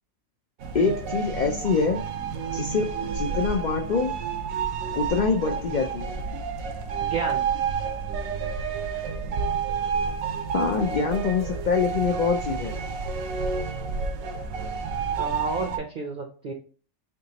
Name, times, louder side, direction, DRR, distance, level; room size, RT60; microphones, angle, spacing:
sound 1, 0.6-15.8, right 5 dB, 80° right, 1.0 m, -30 dB
voice 1, 0.7-2.0 2.5-4.1 5.0-6.1 10.5-12.7, left 5 dB, 75° left, 2 dB, 0.4 m, -25 dB
voice 2, 7.0-7.4 15.2-16.5, right 3 dB, 50° right, 3 dB, 0.6 m, -31 dB
3.9 x 3.5 x 2.8 m, 0.40 s
omnidirectional pair, 1.4 m